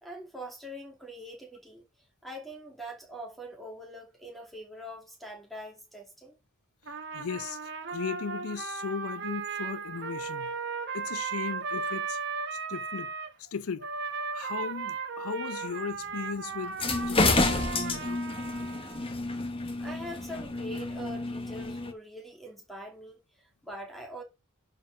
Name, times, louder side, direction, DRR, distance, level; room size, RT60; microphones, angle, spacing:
voice 1, 0.0-6.4 19.8-24.2, equal, ahead, 2.6 m, -43 dB
Trumpet, 6.9-13.3 13.8-19.1, right 5 dB, 50° right, 1.3 m, -36 dB
voice 2, 7.1-10.5 10.9-12.2 12.5-13.1 13.4-13.9 14.3-18.2, left 5 dB, 80° left, 0.6 m, -37 dB
sound 1, 16.7-21.9, left 2 dB, 25° left, 1.0 m, -29 dB
11.0 x 4.8 x 4.8 m
head